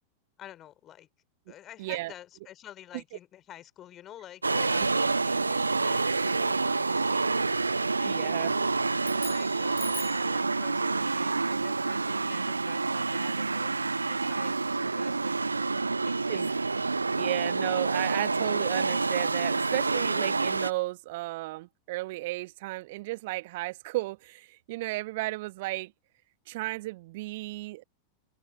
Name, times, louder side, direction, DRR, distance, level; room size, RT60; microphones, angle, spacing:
voice 1, 0.4-1.1 1.5-7.5 8.0-8.7 9.0-16.6, left 12 dB, 30° left, 3.4 m, -49 dB
voice 2, 1.8-2.1 6.0-6.2 8.0-8.5 16.3-16.5 17.2-25.9 26.5-27.8, right 20 dB, 50° right, 1.3 m, -34 dB
sound 1, 4.4-20.7, right 3 dB, 80° right, 0.5 m, -28 dB
sound 2, 9.0-10.4, left 2 dB, 10° left, 0.6 m, -42 dB
open air
figure-of-eight pair, 90°, 0 cm